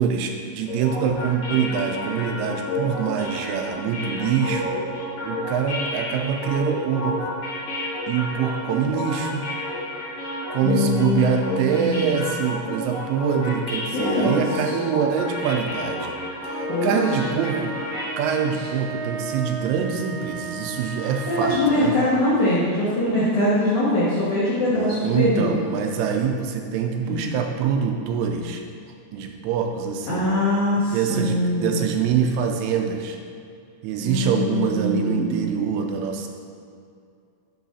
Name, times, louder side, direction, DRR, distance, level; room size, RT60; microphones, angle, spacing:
voice 1, 0.0-4.7 5.2-7.2 8.1-9.5 10.5-16.2 16.4-17.8 18.2-21.9 24.8-28.6 29.1-30.3 30.9-33.2 33.8-36.3, right 7 dB, 90° right, 3 dB, 3.1 m, -24 dB
sound 1, 0.7-18.5, left 1 dB, 55° left, 2.4 m, -30 dB
voice 2, 10.6-12.2 13.9-14.4 16.7-17.1 21.3-25.5 27.1-27.3 30.1-31.7 34.0-35.5, left 1 dB, 90° left, -9 dB, 1.6 m, -23 dB
sound 2, 16.4-21.8, right 4 dB, 70° right, 1.7 m, -35 dB
11.0 x 4.0 x 4.2 m, 2.4 s
omnidirectional pair, 5.6 m